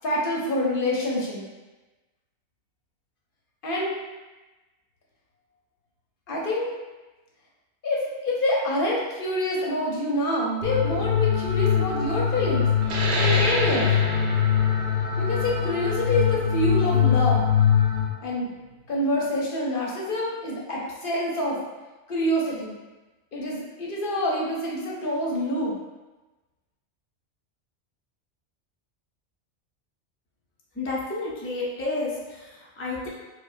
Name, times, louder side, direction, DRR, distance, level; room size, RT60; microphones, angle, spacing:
voice 1, 0.0-1.5 3.6-3.9 6.3-6.7 7.8-12.7 13.1-13.9 15.2-17.4 18.2-18.5 18.9-21.6 22.1-22.8 23.3-25.8, left 1 dB, 60° left, -3 dB, 0.7 m, -26 dB
sound 1, 10.6-18.0, left 8 dB, 45° right, 1.5 m, -23 dB
sound 2, 12.8-18.0, right 1 dB, 75° right, 0.9 m, -31 dB
voice 2, 30.8-33.1, left 2 dB, 20° left, -5 dB, 0.3 m, -31 dB
4.9 x 2.1 x 2.4 m, 1.2 s
omnidirectional pair, 1.2 m